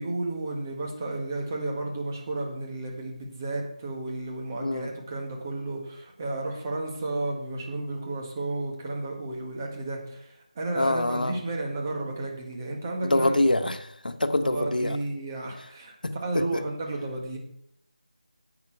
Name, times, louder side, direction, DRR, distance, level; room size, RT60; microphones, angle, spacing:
voice 1, 0.0-13.7 14.4-15.9 16.2-17.4, right 2 dB, 20° right, 0 dB, 1.7 m, -32 dB
voice 2, 10.7-11.4 13.0-15.0 16.0-16.6, left 1 dB, 90° left, 10 dB, 1.1 m, -25 dB
10.5 x 8.7 x 4.7 m, 0.74 s
figure-of-eight pair, 170°, 4 cm